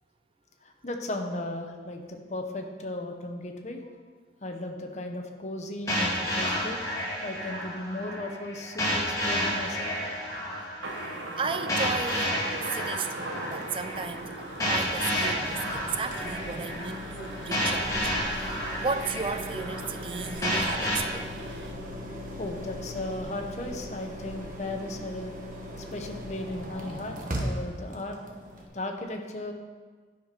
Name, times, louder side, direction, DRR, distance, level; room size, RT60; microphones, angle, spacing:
voice 1, 0.6-4.0 4.4-6.8 7.2-9.9 22.4-25.3 25.8-28.2 28.7-29.5, left 1 dB, 40° left, 3 dB, 1.0 m, -36 dB
sound 1, 5.9-21.0, equal, 20° left, 2.4 m, -31 dB
Thunder, 10.8-21.7, right 2 dB, 85° right, 0.9 m, -41 dB
voice 2, 11.1-21.4, right 5 dB, 30° right, 10 dB, 0.3 m, -35 dB
sound 2, 13.5-28.7, equal, 45° right, 1.2 m, -39 dB
10.0 x 5.9 x 5.2 m, 1.5 s
head